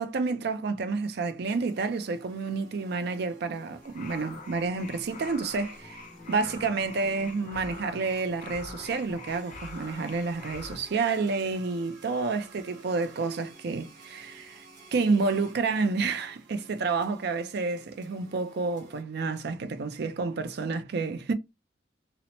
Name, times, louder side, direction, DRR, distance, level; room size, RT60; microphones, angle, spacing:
voice 1, 0.0-14.7 14.9-21.3, right 4 dB, 60° right, 0.4 m, -29 dB
sound 1, 1.5-19.0, right 1 dB, 75° right, 1.0 m, -52 dB
sound 2, 3.8-10.8, left 4 dB, 45° left, 0.5 m, -45 dB
Acoustic guitar, 4.2-9.6, left 1 dB, ahead, 0.6 m, -52 dB
2.8 x 2.1 x 2.8 m
head